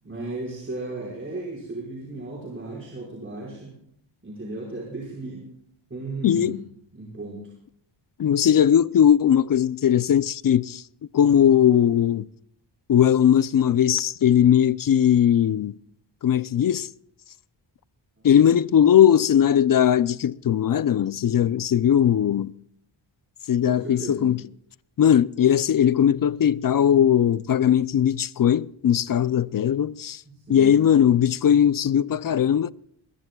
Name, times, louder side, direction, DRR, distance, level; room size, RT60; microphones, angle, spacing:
voice 1, 0.0-3.7 4.2-5.4 5.9-6.6 6.9-7.5 23.6-24.3 30.5-30.7, right 2 dB, 25° right, 5.1 m, -35 dB
voice 2, 6.2-6.6 8.2-10.8 11.1-12.3 12.9-15.8 16.2-16.9 18.2-22.5 23.5-24.4 25.0-30.2 30.5-32.7, left 9 dB, 45° left, 0.5 m, -19 dB
22.0 x 21.5 x 2.3 m
wide cardioid pair, 115°, 48 cm